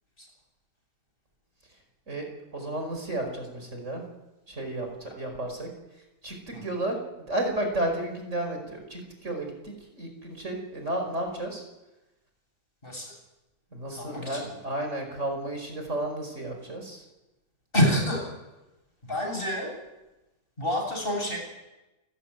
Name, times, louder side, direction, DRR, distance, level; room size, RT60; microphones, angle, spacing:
voice 1, 2.5-4.0 4.5-5.7 6.2-7.0 7.3-11.6 13.7-17.0, right 1 dB, 50° right, 4 dB, 5.5 m, -32 dB
voice 2, 12.8-13.1 13.9-14.6 17.7-18.3 19.0-19.7 20.6-21.4, equal, 35° left, 1 dB, 8.1 m, -28 dB
28.5 x 14.5 x 9.5 m, 1.0 s
omnidirectional pair, 1.6 m